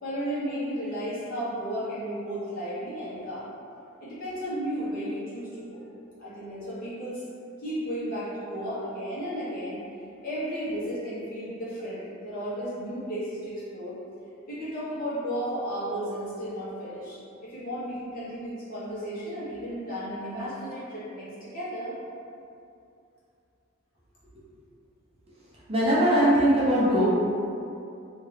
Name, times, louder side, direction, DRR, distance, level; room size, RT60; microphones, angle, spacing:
voice 1, 0.0-3.5 4.0-5.9 6.2-7.2 7.6-9.8 10.2-14.0 14.5-17.2 17.4-22.0, equal, 40° left, -11 dB, 1.1 m, -34 dB
voice 2, 25.7-27.1, equal, 25° right, -9 dB, 0.6 m, -20 dB
2.8 x 2.5 x 3.2 m, 2.6 s
head